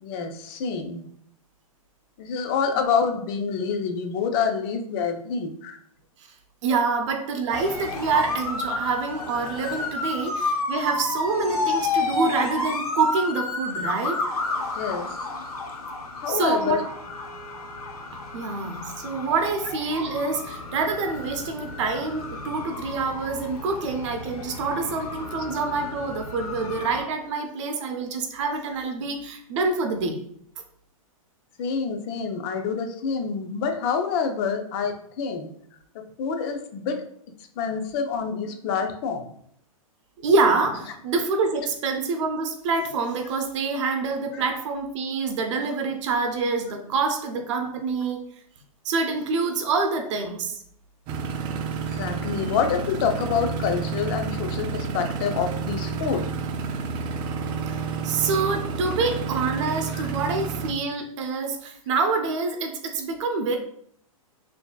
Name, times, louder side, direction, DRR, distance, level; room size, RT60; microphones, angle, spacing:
voice 1, 0.0-1.1 2.2-5.8 14.7-15.2 16.2-16.9 31.6-35.5 35.9-37.1 37.6-39.3 44.3-44.4 51.9-56.3 59.9-60.1, left 6 dB, 40° left, 5 dB, 0.5 m, -27 dB
voice 2, 6.6-14.2 16.3-16.8 18.3-30.2 40.2-48.2 48.8-50.6 57.7-63.6, right 4 dB, 55° right, 4 dB, 0.7 m, -26 dB
sound 1, 7.5-27.0, left 3 dB, 85° left, 0.8 m, -31 dB
sound 2, 51.1-60.7, right 5 dB, 25° right, 0.3 m, -30 dB
4.2 x 2.7 x 2.2 m, 0.66 s
hypercardioid pair, 130°, 19 cm